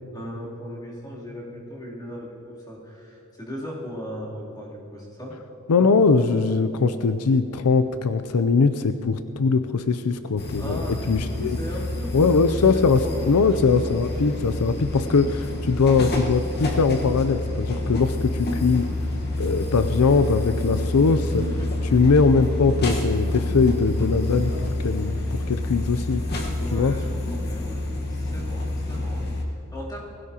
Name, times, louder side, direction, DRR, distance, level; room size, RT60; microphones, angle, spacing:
voice 1, 0.1-5.4 10.6-12.4 13.0-13.3 21.6-21.7 26.6-27.8 28.1-30.0, equal, 20° left, -6 dB, 3.2 m, -38 dB
voice 2, 5.7-11.6 12.1-18.9 19.4-26.2 26.7-27.0, left 4 dB, 85° left, 10 dB, 0.5 m, -21 dB
sound 1, 10.4-29.4, left 2 dB, 45° left, 1.4 m, -28 dB
20.0 x 16.0 x 2.9 m, 2.9 s
head